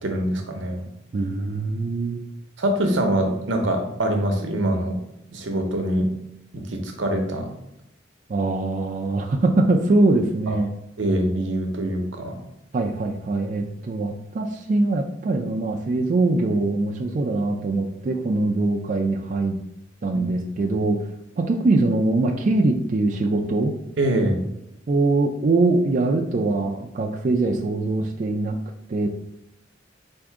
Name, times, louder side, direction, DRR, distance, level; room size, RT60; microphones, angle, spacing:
voice 1, 0.0-0.8 2.6-5.0 5.3-6.1 6.5-7.5 10.5-10.6 11.0-12.4 24.0-24.4, right 1 dB, 80° right, 4 dB, 0.7 m, -24 dB
voice 2, 1.1-2.2 8.3-10.7 12.7-19.6 20.0-21.0 21.4-23.7 24.9-28.6 28.9-29.1, right 2 dB, 40° right, 1 dB, 0.3 m, -22 dB
3.6 x 2.6 x 4.6 m, 0.81 s
head